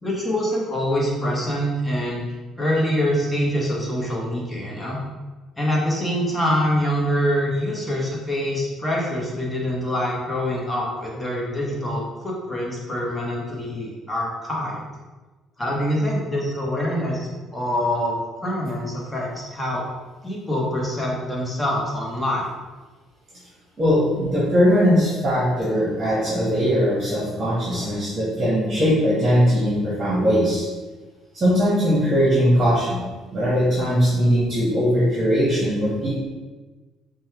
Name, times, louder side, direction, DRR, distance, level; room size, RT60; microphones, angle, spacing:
voice 1, 0.0-2.2 2.6-5.0 5.6-14.8 15.6-19.8 20.2-22.5, equal, 10° left, -3 dB, 1.2 m, -25 dB
voice 2, 23.8-30.6 31.3-33.0 33.3-36.2, equal, 30° right, -7 dB, 1.4 m, -20 dB
5.3 x 2.3 x 3.2 m, 1.3 s
cardioid pair, 95°, 0 cm